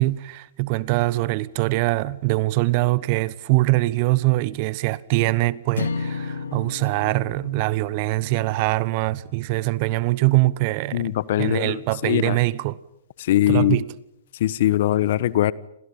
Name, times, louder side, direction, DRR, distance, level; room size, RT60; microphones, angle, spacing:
voice 1, 0.0-11.1 11.4-12.8 13.5-13.9, right 20 dB, 45° right, 1.2 m, -23 dB
sound 1, 5.8-10.1, left 5 dB, 75° left, 2.4 m, -34 dB
voice 2, 10.9-12.4 13.2-13.8 14.4-15.5, left 13 dB, 60° left, 1.2 m, -21 dB
30.0 x 27.5 x 5.6 m
hypercardioid pair, 115°, 0 cm